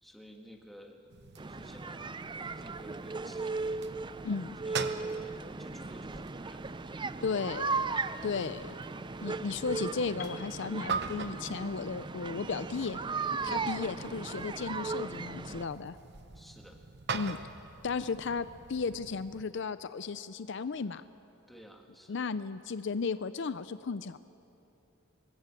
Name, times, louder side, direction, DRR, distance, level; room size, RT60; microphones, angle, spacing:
voice 1, 0.0-2.3 2.6-3.8 4.6-6.7 7.3-7.6 13.4-13.7 16.3-16.8 21.5-22.3, equal, ahead, 1 dB, 2.0 m, -53 dB
sound 1, 1.1-19.4, right 5 dB, 55° right, 1.0 m, -44 dB
sound 2, 1.4-15.6, right 4 dB, 25° right, 0.5 m, -37 dB
voice 2, 4.2-4.6 7.2-7.8 8.2-8.7 9.2-13.0 13.5-16.0 17.1-17.4 17.8-21.0 22.1-24.2, left 5 dB, 60° left, 14 dB, 0.5 m, -35 dB
Piano, 10.2-14.1, left 5 dB, 45° left, 1.7 m, -52 dB
24.0 x 20.0 x 8.5 m, 2.9 s
head